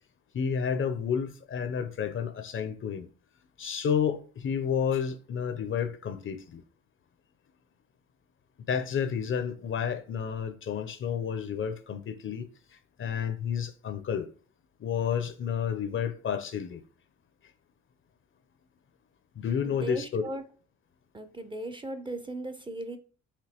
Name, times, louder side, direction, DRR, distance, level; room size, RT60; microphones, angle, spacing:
voice 1, 0.3-3.1 3.6-6.6 8.7-12.5 13.0-14.3 14.8-16.8 19.4-20.2, left 7 dB, 45° left, 0.5 m, -30 dB
voice 2, 19.6-20.4 21.1-23.0, right 2 dB, 15° right, 0.5 m, -37 dB
5.1 x 2.9 x 2.8 m
cardioid pair, 90°, 30 cm